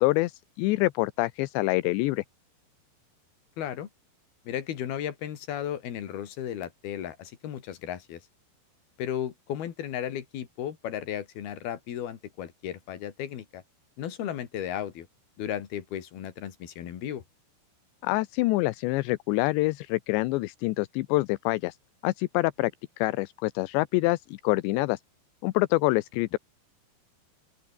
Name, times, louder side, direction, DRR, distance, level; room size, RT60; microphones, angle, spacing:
voice 1, 0.0-2.2 18.0-21.8 22.0-22.7 23.0-25.0 25.4-26.4, left 20 dB, 85° left, 3.0 m, -26 dB
voice 2, 3.6-3.9 4.5-8.2 9.0-13.6 14.0-15.1 15.4-17.2, left 10 dB, 65° left, 4.1 m, -35 dB
open air
omnidirectional pair, 5.1 m